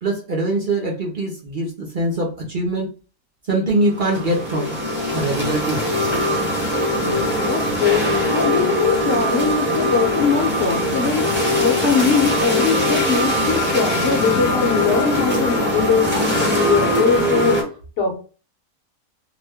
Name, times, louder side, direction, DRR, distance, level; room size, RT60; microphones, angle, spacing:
voice 1, 0.0-2.9 3.5-4.8 5.1-5.8, right 2 dB, 45° right, -2 dB, 0.7 m, -22 dB
sound 1, 3.9-17.6, equal, 10° right, 0.9 m, -21 dB
voice 2, 6.9-8.0 8.3-11.2 11.6-17.6 18.0-18.2, left 6 dB, 55° left, 2 dB, 1.1 m, -21 dB
2.8 x 2.1 x 3.4 m, 0.36 s
omnidirectional pair, 1.5 m